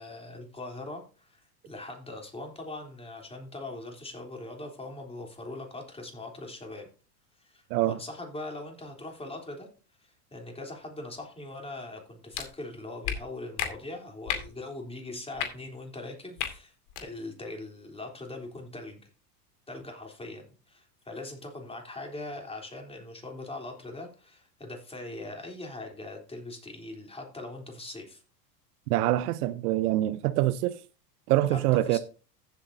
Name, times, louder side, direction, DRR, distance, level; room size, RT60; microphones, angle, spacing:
voice 1, 0.0-6.9 7.4-9.7 10.0-19.0 19.7-28.2 31.5-31.6 31.9-32.0, left 2 dB, 10° left, 3.6 m, -41 dB
sound 1, 12.3-12.5 13.0-13.2 13.6-13.7 14.3-14.5 15.3-15.5 16.4-16.5 16.9-17.0, left 9 dB, 60° left, 2.6 m, -31 dB
voice 2, 28.9-30.8 31.3-32.0, right 15 dB, 65° right, 0.8 m, -25 dB
15.0 x 8.1 x 2.8 m
hypercardioid pair, 105°, 48 cm